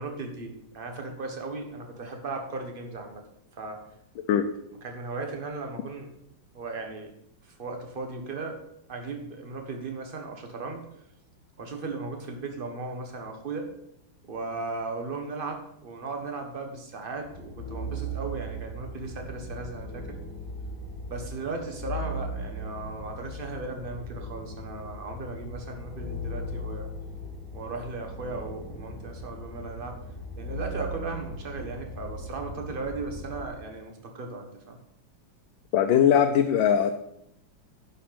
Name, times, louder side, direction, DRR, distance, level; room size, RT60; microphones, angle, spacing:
voice 1, 0.0-3.2 3.6-3.8 4.8-6.1 6.5-7.1 7.4-8.6 8.9-10.9 11.6-13.7 14.2-20.2 21.1-26.9 27.5-30.0 30.4-34.8, right 3 dB, 30° right, 3 dB, 1.5 m, -36 dB
sound 1, 17.2-33.5, equal, 15° left, 3.7 m, -38 dB
voice 2, 35.7-36.9, left 9 dB, 80° left, 6 dB, 1.4 m, -20 dB
11.0 x 5.7 x 5.9 m, 0.77 s
omnidirectional pair, 2.1 m